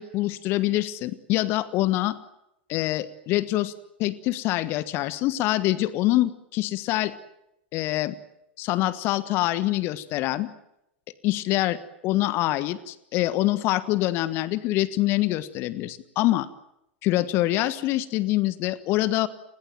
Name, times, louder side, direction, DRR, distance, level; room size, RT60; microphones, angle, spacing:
voice 1, 0.0-2.2 2.7-3.7 4.0-7.1 7.7-8.2 8.6-10.5 11.2-16.5 17.0-19.3, left 16 dB, 40° left, 16 dB, 1.4 m, -25 dB
29.5 x 21.0 x 9.2 m, 0.82 s
figure-of-eight pair, 90°, 6 cm